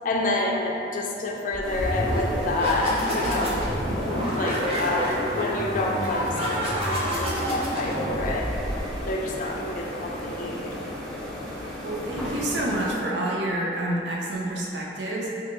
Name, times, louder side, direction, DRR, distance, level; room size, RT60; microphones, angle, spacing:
voice 1, 0.0-3.6 4.0-8.5 9.1-10.7, left 2 dB, 45° left, -1 dB, 0.4 m, -28 dB
sound 1, 1.5-9.1, equal, 35° right, 0.7 m, -28 dB
sound 2, 1.6-12.9, left 1 dB, ahead, 0.6 m, -35 dB
voice 2, 11.8-15.3, right 1 dB, 75° right, -3 dB, 0.6 m, -28 dB
2.7 x 2.6 x 3.8 m, 2.8 s
head